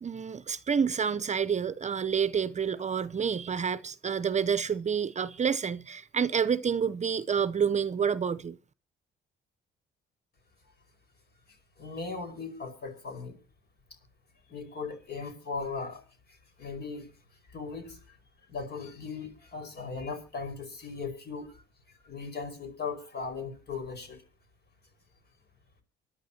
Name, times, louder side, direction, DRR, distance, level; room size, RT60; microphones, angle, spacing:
voice 1, 0.0-8.6, right 7 dB, 35° right, 0.7 m, -28 dB
voice 2, 11.8-13.4 14.5-16.0 16.6-17.1 17.5-18.2 18.5-21.6 22.0-24.2, left 4 dB, 55° left, 5.3 m, -38 dB
24.5 x 11.0 x 2.8 m
cardioid pair, 90°, 20 cm